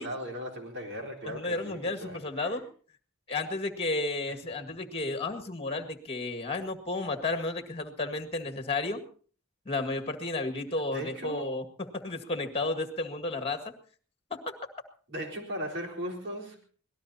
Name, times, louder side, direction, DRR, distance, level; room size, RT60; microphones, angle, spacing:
voice 1, 0.0-2.6 10.9-11.5 15.1-16.6, equal, 55° right, 0 dB, 4.0 m, -38 dB
voice 2, 1.3-2.6 3.3-9.0 9.7-11.6 11.9-13.6 14.3-14.5, left 2 dB, 25° left, 7 dB, 1.9 m, -32 dB
25.0 x 18.5 x 2.8 m, 0.43 s
head